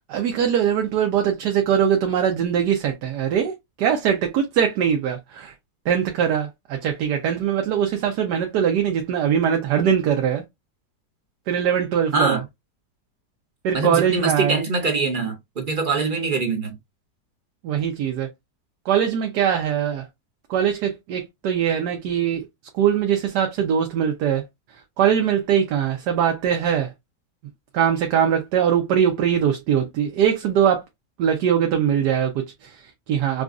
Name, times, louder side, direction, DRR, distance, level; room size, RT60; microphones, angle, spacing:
voice 1, 0.1-5.5 5.8-10.4 11.5-12.4 13.6-14.6 17.6-18.3 18.8-20.1 20.5-22.5 22.7-24.4 25.0-26.9 27.7-30.8 31.2-33.4, right 8 dB, 75° right, 1.3 m, -22 dB
voice 2, 13.7-16.8, right 4 dB, 50° right, 0.6 m, -23 dB
4.9 x 2.3 x 2.4 m
omnidirectional pair, 1.8 m